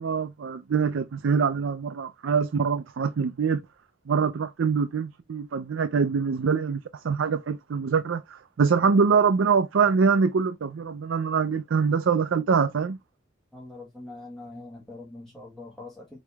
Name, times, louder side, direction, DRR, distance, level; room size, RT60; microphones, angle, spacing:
voice 1, 0.0-3.6 4.1-13.0, right 5 dB, 85° right, 0.4 m, -24 dB
voice 2, 13.5-16.2, left 2 dB, ahead, 1.4 m, -43 dB
5.1 x 3.1 x 3.4 m
head